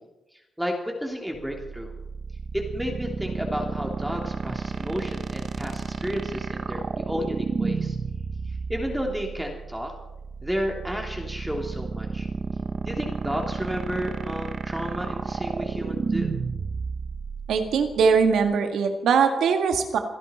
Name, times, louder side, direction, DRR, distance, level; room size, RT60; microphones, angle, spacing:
voice 1, 0.6-1.9 2.5-8.0 8.7-9.9 10.4-12.3 12.8-16.3, equal, 5° right, 1 dB, 3.0 m, -32 dB
sound 1, 1.3-18.5, right 5 dB, 55° right, 1.2 m, -31 dB
voice 2, 17.5-20.0, right 6 dB, 80° right, 5 dB, 1.9 m, -21 dB
28.5 x 11.0 x 4.4 m, 0.98 s
cardioid pair, 75°, 0 cm